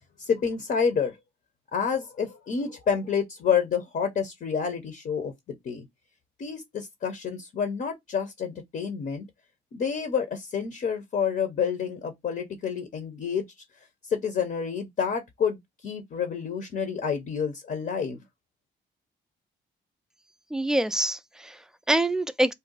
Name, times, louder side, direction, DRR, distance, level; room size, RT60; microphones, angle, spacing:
voice 1, 0.2-1.1 1.7-5.9 6.4-9.3 9.7-13.4 14.1-18.2, left 6 dB, 50° left, 0.7 m, -29 dB
voice 2, 20.5-22.5, right 1 dB, 5° right, 0.3 m, -26 dB
2.6 x 2.3 x 3.8 m
cardioid pair, 90°, 20 cm